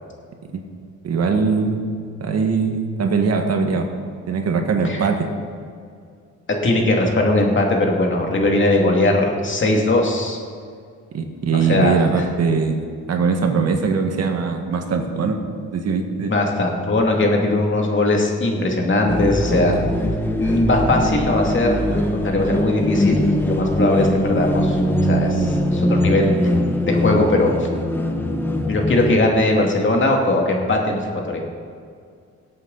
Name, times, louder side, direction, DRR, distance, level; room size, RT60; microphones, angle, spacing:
voice 1, 1.0-1.9 2.2-3.9 4.3-5.3 11.1-12.8 13.1-15.4 15.7-16.3 19.5-19.7, right 5 dB, 55° right, 4 dB, 1.7 m, -21 dB
voice 2, 6.6-10.4 11.7-12.2 16.2-19.7 20.4-26.3 26.8-27.7 28.7-31.4, left 2 dB, 40° left, 0 dB, 2.5 m, -20 dB
sound 1, 19.1-29.1, left 1 dB, 5° left, 1.2 m, -21 dB
18.5 x 8.2 x 4.1 m, 2.2 s
cardioid pair, 90°, 30 cm